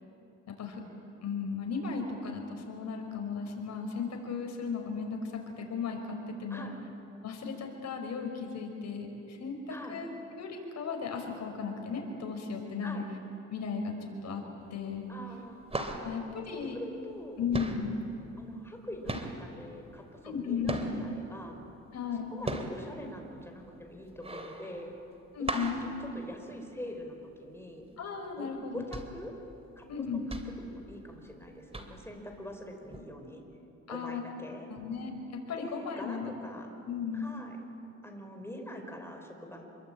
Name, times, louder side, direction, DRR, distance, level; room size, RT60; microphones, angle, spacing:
voice 1, 0.5-0.8 1.2-5.3 5.6-6.7 7.2-13.0 13.5-14.4 14.7-15.1 16.0-16.8 17.4-18.0 20.2-20.9 21.9-22.4 25.3-25.8 28.0-28.8 29.9-30.3 33.9-34.2 34.7-36.3 36.9-37.4, left 5 dB, 60° left, 3 dB, 5.4 m, -35 dB
sound 1, 14.6-15.0 15.3-17.2 17.5-21.2 21.7-27.0 27.3-27.4 27.8-28.0 28.6-31.4 31.7-32.2 32.9-33.0, right 2 dB, 20° right, 3.0 m, -38 dB
voice 2, 15.1-15.7 16.0-16.1 16.5-17.5 18.4-21.6 22.3-24.9 25.4-27.9 28.4-29.3 29.8-29.9 30.6-33.4 33.9-34.7 35.6-36.7 37.1-37.6 38.0-39.7, left 1 dB, 10° left, 3 dB, 4.9 m, -44 dB
27.0 x 23.0 x 8.8 m, 3.0 s
cardioid pair, 90°, 30 cm